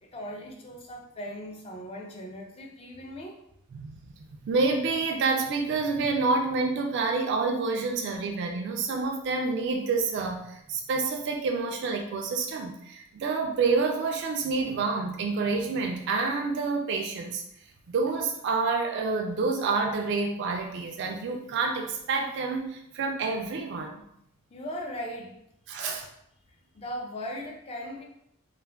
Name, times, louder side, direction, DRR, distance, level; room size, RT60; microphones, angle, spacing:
voice 1, 0.0-3.4 24.5-25.4 25.8-26.0 26.7-28.0, equal, 30° left, 1 dB, 0.4 m, -38 dB
voice 2, 3.7-4.1 4.4-17.4 17.9-24.0 25.7-26.0, right 4 dB, 55° right, 2 dB, 0.3 m, -28 dB
2.3 x 2.1 x 3.3 m, 0.76 s
head